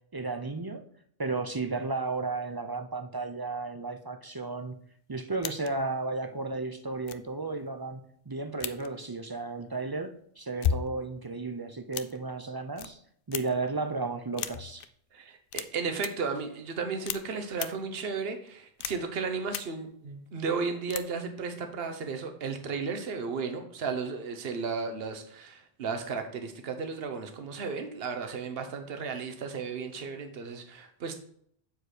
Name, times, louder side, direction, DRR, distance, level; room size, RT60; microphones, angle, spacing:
voice 1, 0.1-0.8 1.2-4.7 5.1-8.0 8.3-13.0 13.3-14.8, right 3 dB, 30° right, 0.5 m, -33 dB
sound 1, 5.4-5.8 6.5-6.6 7.0-7.3 8.6-8.9 10.4-11.0 11.9-12.2 12.8-12.9 13.3-13.7 14.3-14.9 15.5-15.6 15.9-16.1 17.1-17.2 17.5-17.7 18.8-19.1 19.5-19.6 20.9-21.0, left 8 dB, 65° left, 0.7 m, -33 dB
voice 2, 15.1-31.2, right 5 dB, 65° right, 1.1 m, -34 dB
8.0 x 4.7 x 4.9 m
omnidirectional pair, 1.1 m